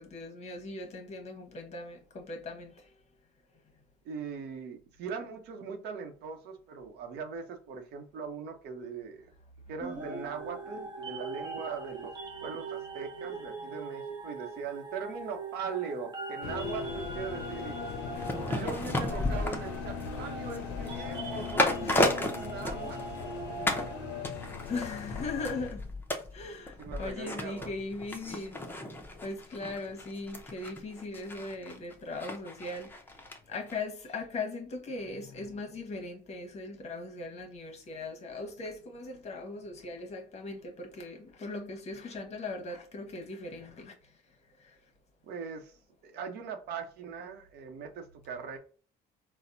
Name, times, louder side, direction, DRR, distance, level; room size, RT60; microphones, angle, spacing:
voice 1, 0.0-2.9 13.6-13.7 21.8-22.1 24.7-25.9 26.3-28.6 29.2-32.9 33.5-44.2 44.6-44.8, left 3 dB, 40° left, 1.0 m, -39 dB
voice 2, 4.0-9.3 9.7-12.1 12.4-17.8 18.5-23.3 26.8-27.7 45.2-45.7 46.0-48.6, right 5 dB, 75° right, 0.7 m, -40 dB
sound 1, 9.8-24.2, right 4 dB, 25° right, 0.6 m, -42 dB
sound 2, 16.4-25.7, left 8 dB, 90° left, 0.5 m, -39 dB
sound 3, 18.1-23.3 23.7-23.9 24.2-33.4 33.7-33.8, left 1 dB, 10° left, 0.6 m, -34 dB
4.1 x 2.1 x 2.5 m
cardioid pair, 110°, 17 cm